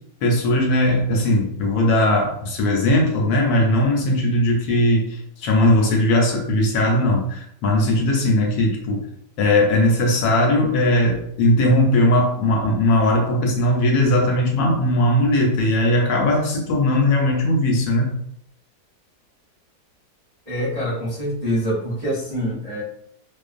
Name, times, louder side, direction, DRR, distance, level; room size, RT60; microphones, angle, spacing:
voice 1, 0.2-9.1 9.4-18.1, left 1 dB, 75° left, 1 dB, 1.1 m, -19 dB
voice 2, 20.5-22.8, equal, 30° right, -10 dB, 0.7 m, -25 dB
2.5 x 2.4 x 2.4 m, 0.70 s
omnidirectional pair, 1.8 m